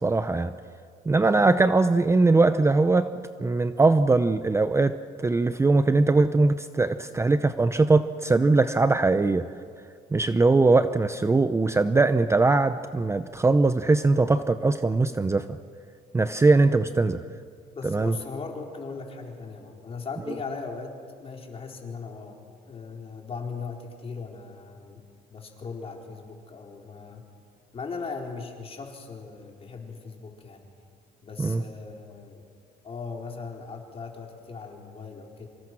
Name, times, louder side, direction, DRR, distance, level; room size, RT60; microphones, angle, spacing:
voice 1, 0.0-0.5 1.1-3.1 3.4-4.9 5.2-9.5 10.1-15.5 16.1-17.2 17.8-18.1 31.4-31.6, right 3 dB, 15° right, 11 dB, 0.7 m, -21 dB
voice 2, 17.7-22.4 22.7-25.0 25.3-27.2 27.7-30.7 31.2-32.4 32.8-35.5, left 4 dB, 35° left, 1 dB, 4.3 m, -38 dB
26.0 x 25.5 x 6.2 m, 2.2 s
cardioid pair, 110°, 17 cm